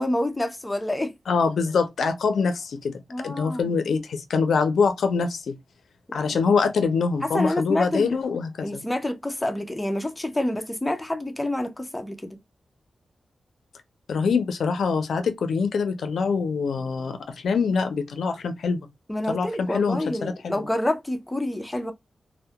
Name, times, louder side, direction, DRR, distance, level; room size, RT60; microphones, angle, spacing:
voice 1, 0.0-1.1 3.1-3.7 6.2-6.3 7.2-8.2 8.6-12.4 19.1-21.9, left 1 dB, 15° left, 0.4 m, -28 dB
voice 2, 1.3-2.9 3.2-5.6 6.1-8.8 14.1-18.9 19.3-20.6, left 5 dB, 85° left, 0.4 m, -24 dB
2.2 x 2.0 x 2.7 m
wide cardioid pair, 95°, 0 cm